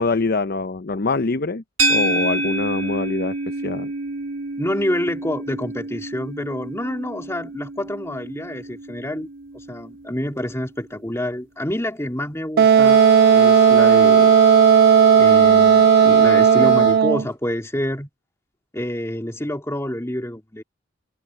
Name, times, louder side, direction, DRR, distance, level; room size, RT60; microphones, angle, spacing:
voice 1, 0.0-1.6 1.9-3.9, left 3 dB, 55° left, 0.7 m, -24 dB
sound 1, 1.8-10.2, right 2 dB, 80° right, 3.6 m, -28 dB
voice 2, 4.6-9.3 9.5-13.0 13.3-14.4 15.2-18.1 18.7-20.6, left 1 dB, 15° left, 3.0 m, -27 dB
Wind instrument woodwind instrument, 12.6-17.3, right 7 dB, 55° right, 0.3 m, -13 dB
sound 2, 12.8-17.0, left 5 dB, 80° left, 3.2 m, -29 dB
head